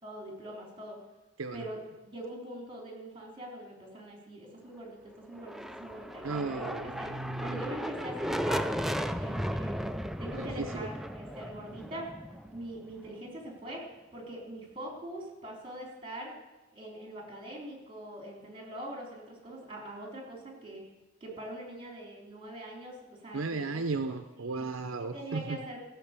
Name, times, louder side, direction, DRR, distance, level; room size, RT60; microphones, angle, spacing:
voice 1, 0.0-1.0 1.5-5.0 5.2-9.8 10.2-12.1 12.5-16.3 16.7-20.8 21.2-23.8 24.4-24.7 25.1-25.9, right 1 dB, 25° right, 0 dB, 3.4 m, -43 dB
sound 1, 5.3-13.1, equal, ahead, 0.4 m, -35 dB
voice 2, 6.2-7.6 10.4-10.9 23.3-25.6, right 3 dB, 70° right, 8 dB, 0.7 m, -35 dB
15.0 x 6.5 x 8.2 m, 1.1 s
head